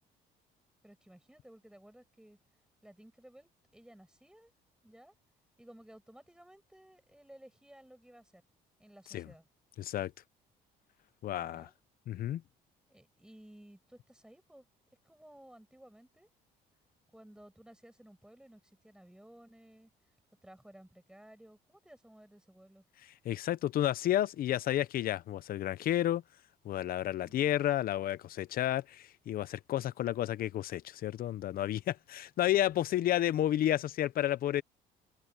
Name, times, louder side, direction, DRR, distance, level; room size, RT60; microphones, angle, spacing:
voice 1, 0.8-2.4 2.8-4.5 4.8-5.1 5.6-8.4 8.8-9.5 11.3-11.7 12.9-14.7 15.0-16.3 17.1-19.9 20.4-22.8 27.2-27.6, right 1 dB, 5° right, 7.8 m, -56 dB
voice 2, 9.8-10.1 11.2-11.7 12.1-12.4 23.2-26.2 26.6-34.6, left 12 dB, 60° left, 0.8 m, -31 dB
cardioid pair, 110°, 17 cm